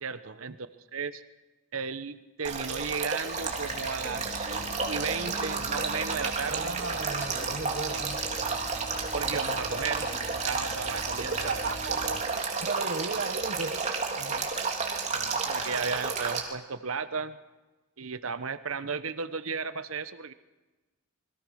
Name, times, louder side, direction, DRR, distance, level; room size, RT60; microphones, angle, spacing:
voice 1, 0.0-1.2 1.7-6.8 9.1-10.1 10.4-11.7 15.1-17.4 18.0-20.3, right 5 dB, 80° right, 12 dB, 1.0 m, -35 dB
Male speech man speaking / Stream / Trickle dribble, 2.4-16.4, right 4 dB, 35° right, 3.3 m, -32 dB
sound 1, 3.4-12.2, left 1 dB, 55° left, 2.8 m, -42 dB
voice 2, 6.5-8.2 11.4-14.5, right 4 dB, 55° right, 10 dB, 1.0 m, -36 dB
28.0 x 22.0 x 6.4 m, 1.2 s
head